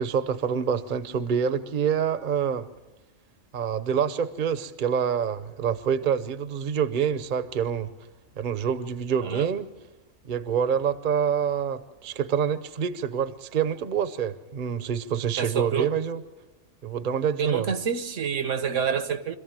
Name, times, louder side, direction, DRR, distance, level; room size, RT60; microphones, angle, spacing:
voice 1, 0.0-2.7 3.5-7.9 8.4-9.7 10.3-16.2 16.8-17.7, right 7 dB, 45° right, 0.9 m, -26 dB
voice 2, 15.4-15.9 17.4-19.3, right 7 dB, 75° right, 1.5 m, -27 dB
25.5 x 15.0 x 8.9 m
omnidirectional pair, 1.3 m